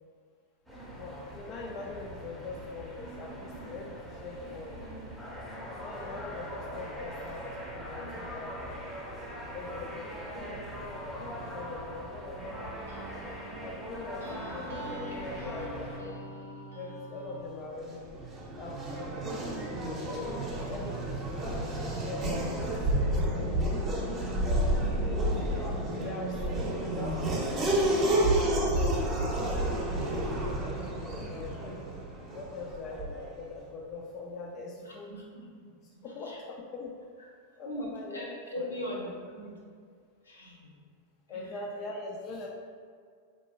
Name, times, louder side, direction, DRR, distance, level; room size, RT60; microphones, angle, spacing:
sound 1, 0.7-16.0, equal, 5° left, 0.7 m, -41 dB
voice 1, 0.9-4.8 5.8-8.8 9.5-12.6 13.6-16.2 16.7-18.0 18.5-19.4 20.0-21.6 21.9-23.7 24.4-25.3 25.6-27.9 28.4-31.7 32.3-35.1 35.8-36.9 37.6-38.2 38.5-38.8 41.3-42.5, left 3 dB, 35° left, -1 dB, 0.4 m, -42 dB
sound 2, 10.5-17.6, right 1 dB, 65° right, 0.6 m, -45 dB
Race car auto racing / Accelerating revving vroom, 17.7-33.3, right 1 dB, 25° right, 0.8 m, -30 dB
voice 2, 34.8-35.4 36.2-36.4 37.6-39.6 40.2-40.7 41.3-41.4, equal, 75° left, -3 dB, 0.8 m, -40 dB
4.3 x 2.8 x 2.9 m, 2.1 s
figure-of-eight pair, 90°, 0 cm